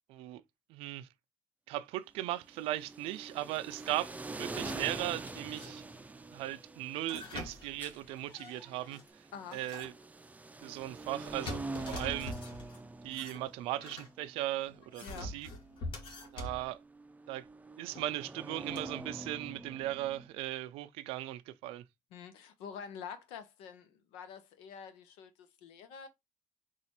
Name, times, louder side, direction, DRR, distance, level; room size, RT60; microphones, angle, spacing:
voice 1, 0.1-0.4 0.7-1.1 1.7-5.9 6.3-9.3 9.5-9.9 10.6-12.3 13.0-15.5 16.3-16.8 17.3-17.5 17.8-21.8, right 15 dB, 80° right, 0.4 m, -38 dB
sound 1, 2.4-20.3, right 2 dB, 15° right, 0.5 m, -45 dB
sound 2, 3.4-5.4 5.7-5.8 7.1-8.2 8.6-9.1, left 2 dB, 15° left, 1.8 m, -58 dB
sound 3, 4.5-4.9 5.5-6.1 7.0-9.0 9.5-10.0 11.1-12.8 13.1-14.1 14.7-16.7 18.0-18.1 18.8-18.9, left 2 dB, 60° left, 1.7 m, -45 dB
voice 2, 15.0-15.4 22.1-26.1, left 7 dB, 85° left, 0.8 m, -47 dB
4.0 x 2.5 x 4.3 m
supercardioid pair, 75°, 10 cm